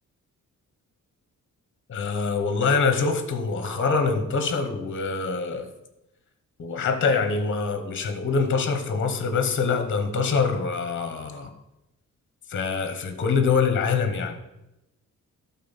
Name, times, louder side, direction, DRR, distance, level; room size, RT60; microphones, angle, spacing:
voice 1, 1.9-5.7 6.6-11.5 12.5-14.4, left 5 dB, 40° left, 8 dB, 0.9 m, -24 dB
11.5 x 4.4 x 5.6 m, 0.93 s
wide cardioid pair, 180°, 31 cm